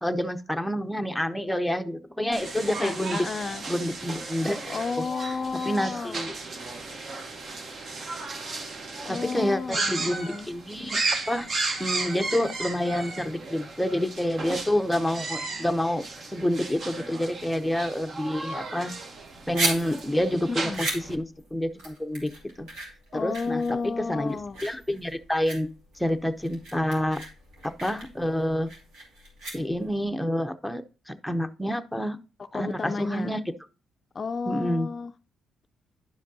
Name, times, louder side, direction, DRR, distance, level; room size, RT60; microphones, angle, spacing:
voice 1, 0.0-3.3 3.7-4.6 5.0-5.1 5.7-6.4 9.1-11.0 11.3-11.5 11.8-16.1 16.3-18.9 19.5-21.3 21.5-22.3 22.6-22.7 23.1-23.8 24.1-24.4 24.6-25.7 26.0-27.2 27.6-28.7 29.5-32.2 32.5-33.5 34.5-34.9, left 1 dB, ahead, 0.6 m, -28 dB
sound 1, 2.3-21.1, right 3 dB, 50° right, 1.1 m, -35 dB
voice 2, 2.8-3.6 4.7-6.3 9.0-10.5 20.5-20.8 23.1-24.6 32.5-33.4 34.1-35.1, left 4 dB, 35° left, 0.4 m, -32 dB
sound 2, 19.1-30.1, right 2 dB, 90° right, 2.7 m, -36 dB
11.0 x 5.0 x 2.7 m
cardioid pair, 90°, 0 cm